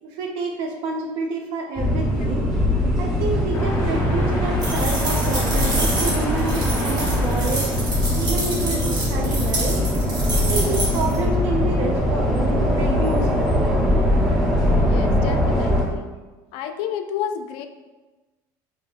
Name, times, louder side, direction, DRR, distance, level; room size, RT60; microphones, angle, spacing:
voice 1, 0.0-2.5 3.0-7.7 8.1-9.8 10.4-13.5, right 3 dB, 70° right, 1 dB, 0.6 m, -28 dB
sound 1, 1.8-15.8, left 1 dB, 5° right, 1.0 m, -21 dB
sound 2, 3.5-9.0, equal, 20° left, 0.9 m, -29 dB
sound 3, 4.6-11.2, right 1 dB, 45° right, 1.2 m, -28 dB
voice 2, 14.8-16.1 16.5-17.7, left 8 dB, 70° left, 8 dB, 0.3 m, -30 dB
5.1 x 2.6 x 2.4 m, 1.2 s
cardioid pair, 155°, 10 cm